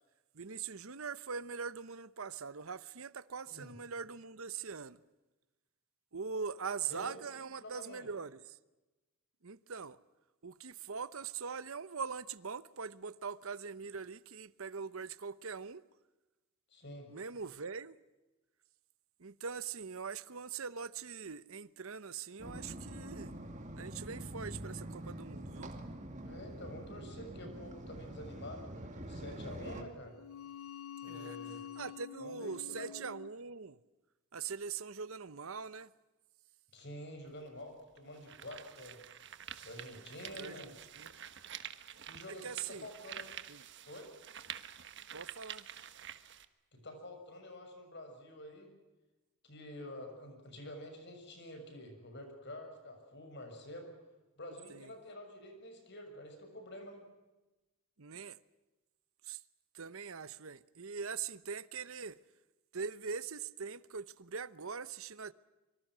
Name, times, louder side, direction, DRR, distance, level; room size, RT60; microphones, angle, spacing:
voice 1, 0.3-5.0 6.1-8.6 9.4-10.0 10.4-15.8 17.1-18.0 19.2-23.3 23.8-25.7 31.1-31.4 31.8-33.8 34.3-35.9 40.4-41.1 42.3-42.9 43.5-43.6 45.1-45.7 54.7-54.9 58.0-58.4 59.3-59.4 59.7-62.2 62.7-65.3, right 5 dB, 70° right, 0.9 m, -42 dB
voice 2, 6.9-8.1 16.7-17.1 26.2-30.1 31.0-31.6 32.2-32.9 36.7-39.0 39.6-40.7 42.1-43.3 43.8-44.1 46.7-48.7 49.4-53.9 54.4-57.0, left 1 dB, 50° left, 6.7 m, -48 dB
sound 1, 22.4-29.8, right 1 dB, 35° right, 2.4 m, -45 dB
sound 2, 30.1-33.3, left 10 dB, 75° left, 0.9 m, -47 dB
sound 3, 37.2-37.3 38.0-46.4, right 10 dB, 55° right, 1.3 m, -48 dB
25.5 x 24.5 x 6.3 m
head